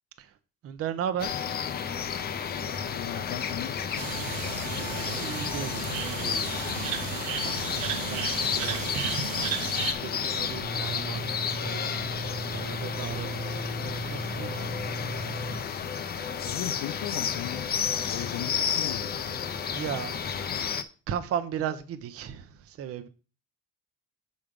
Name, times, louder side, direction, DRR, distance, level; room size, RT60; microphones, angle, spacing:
voice 1, 0.6-1.3 4.8-11.8 12.1-14.7 19.1-20.1 21.1-23.1, right 9 dB, 45° right, 0.7 m, -37 dB
sound 1, 1.2-20.8, left 7 dB, 30° left, 0.5 m, -32 dB
voice 2, 2.9-4.0 16.4-19.1, left 12 dB, 90° left, 0.8 m, -37 dB
sound 2, 4.0-9.9, right 8 dB, 85° right, 1.0 m, -34 dB
sound 3, 10.6-15.6, right 2 dB, 30° right, 1.4 m, -37 dB
7.2 x 5.2 x 5.1 m
cardioid pair, 180°, 33 cm